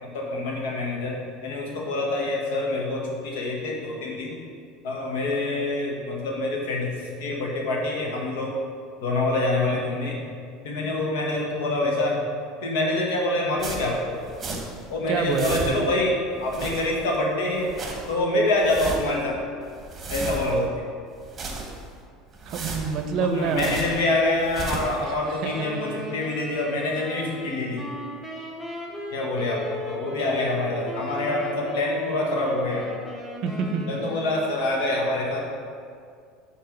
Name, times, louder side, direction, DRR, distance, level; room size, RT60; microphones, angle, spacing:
voice 1, 0.0-4.3 4.8-8.6 9.0-10.2 10.6-12.2 12.6-14.2 14.9-17.7 18.1-19.4 20.1-20.8 23.2-27.9 29.1-32.9 33.9-35.5, left 2 dB, 85° left, -1 dB, 1.2 m, -26 dB
Footsteps in Snow, 13.6-14.9 15.1-16.0 16.4-17.2 17.5-18.1 18.5-19.2 19.6-20.7 21.1-22.0 22.3-24.1 24.4-25.0, right 2 dB, 25° right, 0.9 m, -34 dB
voice 2, 15.1-15.8 22.5-23.7 25.0-25.1 25.4-25.5 33.4-33.8, right 6 dB, 50° right, 6 dB, 0.6 m, -26 dB
Wind instrument woodwind instrument, 25.4-34.5, left 1 dB, 5° left, 0.9 m, -37 dB
5.8 x 3.3 x 5.1 m, 2.2 s
supercardioid pair, 130°, 0 cm